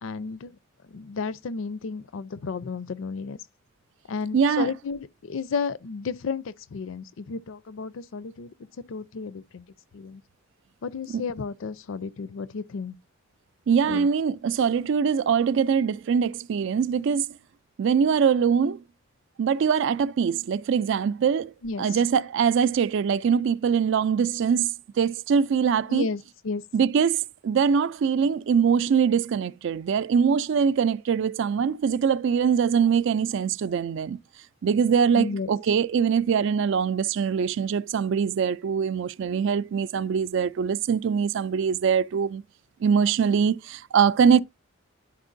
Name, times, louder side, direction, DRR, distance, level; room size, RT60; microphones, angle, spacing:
voice 1, 0.0-0.5 0.9-3.4 4.1-8.5 8.9-9.6 9.9-10.2 10.8-12.9 13.9-14.1 21.6-21.8 25.9-26.6 35.1-35.5, left 4 dB, 70° left, 0.4 m, -32 dB
voice 2, 4.3-4.8 11.1-11.2 13.7-17.3 17.8-18.8 19.4-21.5 21.8-26.1 26.7-34.2 34.6-42.4 42.8-44.4, right 6 dB, 60° right, 0.3 m, -23 dB
11.0 x 4.3 x 2.6 m
head